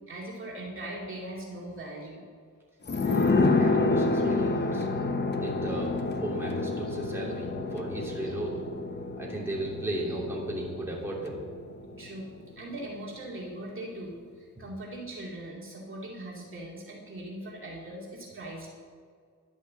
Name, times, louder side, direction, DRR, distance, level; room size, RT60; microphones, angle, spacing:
voice 1, 0.0-2.3 6.8-6.9 8.2-8.3 10.0-10.2 12.0-18.7, right 1 dB, 40° right, -3 dB, 2.5 m, -40 dB
sound 1, 2.9-12.2 12.4-12.5, left 3 dB, 35° left, 1.1 m, -28 dB
voice 2, 3.0-4.9 5.4-8.6 9.2-11.4, right 1 dB, 10° right, -4 dB, 3.1 m, -35 dB
11.5 x 8.2 x 7.5 m, 2.1 s
cardioid pair, 100°, 31 cm